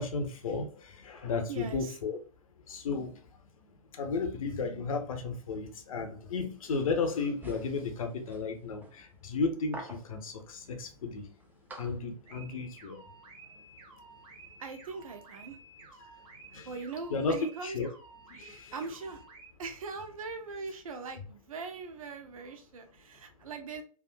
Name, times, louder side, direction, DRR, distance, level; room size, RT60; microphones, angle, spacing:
voice 1, 0.0-2.2 2.7-3.4 3.9-11.3 11.8-13.0 16.5-16.8 17.1-17.4 17.6-17.9 18.3-18.7, left 4 dB, 65° left, 6 dB, 0.7 m, -34 dB
voice 2, 1.5-2.0 14.6-15.6 16.6-17.8 18.7-19.2 19.6-23.8, right 4 dB, 65° right, 6 dB, 0.7 m, -41 dB
sound 1, 7.4-12.7, right 1 dB, 10° right, 0.4 m, -49 dB
sound 2, 12.3-19.5, right 3 dB, 25° right, 0.9 m, -53 dB
3.5 x 2.4 x 2.2 m, 0.40 s
figure-of-eight pair, 105°, 19 cm